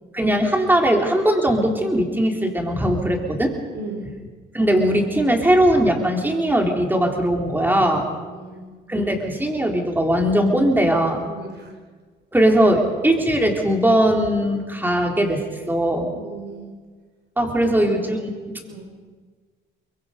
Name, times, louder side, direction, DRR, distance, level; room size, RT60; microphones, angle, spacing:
voice 1, 0.1-3.5 4.5-8.0 8.9-11.3 12.3-16.1 17.4-18.2 18.5-18.6, right 1 dB, 10° right, 1 dB, 3.8 m, -19 dB
voice 2, 3.7-4.1 8.1-8.8 11.2-11.7 16.1-16.7 17.6-18.2 18.7-18.9, right 3 dB, 60° right, 3 dB, 4.9 m, -37 dB
24.0 x 22.5 x 5.3 m, 1.5 s
cardioid pair, 90°, 20 cm